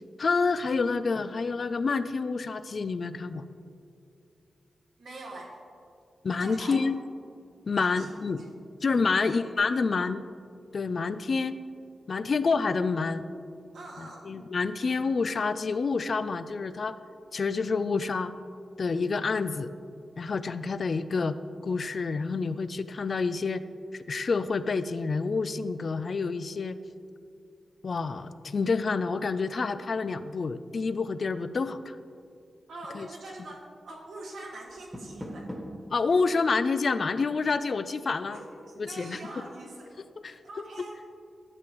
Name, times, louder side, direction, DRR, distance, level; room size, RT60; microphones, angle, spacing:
voice 1, 0.2-3.5 6.2-7.0 7.7-8.4 8.8-10.2 10.7-11.6 12.1-13.2 14.0-17.0 17.3-18.3 18.8-19.7 20.2-21.4 21.6-23.6 23.9-26.8 27.8-32.0 32.9-33.1 35.9-38.4 38.8-39.2 40.2-40.4, left 4 dB, 50° left, 13 dB, 0.3 m, -28 dB
voice 2, 5.0-5.5 6.4-6.9 7.7-8.5 9.0-9.9 13.7-14.3 32.7-35.5 38.3-39.9 40.4-41.0, right 2 dB, 85° right, -2 dB, 1.6 m, -44 dB
Door, 34.7-35.9, equal, ahead, 1.4 m, -40 dB
12.0 x 7.7 x 3.0 m, 2.4 s
wide cardioid pair, 110°, 0 cm